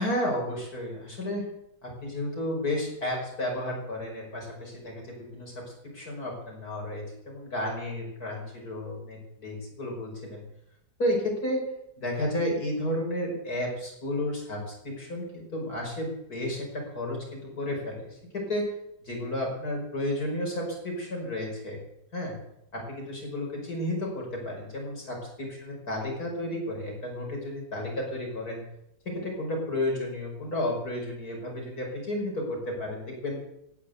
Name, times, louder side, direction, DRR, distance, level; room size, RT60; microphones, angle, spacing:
voice 1, 0.0-1.4 1.8-5.6 5.9-10.4 11.0-11.6 12.0-18.1 18.3-18.7 19.0-21.8 22.1-22.3 22.7-28.6 29.1-33.4, left 1 dB, 55° left, -1 dB, 6.1 m, -32 dB
16.0 x 9.6 x 8.2 m, 0.81 s
omnidirectional pair, 1.9 m